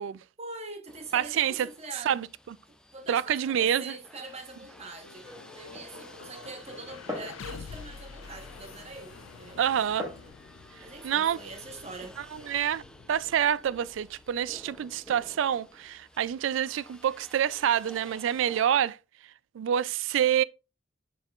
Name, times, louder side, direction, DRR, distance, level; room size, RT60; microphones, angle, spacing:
voice 1, 0.4-2.1 2.7-5.3 5.5-9.6 10.8-12.1, right 3 dB, 35° right, 1.1 m, -43 dB
sound 1, 0.9-18.6, left 1 dB, 5° left, 0.6 m, -53 dB
voice 2, 1.1-1.7 2.1-2.3 3.1-3.9 9.6-10.1 11.0-11.4 12.3-12.8 13.1-19.0 19.5-20.4, right 9 dB, 70° right, 0.3 m, -27 dB
sound 2, 4.4-16.5, left 6 dB, 80° left, 0.4 m, -49 dB
Glass, 5.1-10.3, left 1 dB, 15° right, 1.6 m, -44 dB
7.2 x 5.5 x 2.4 m
head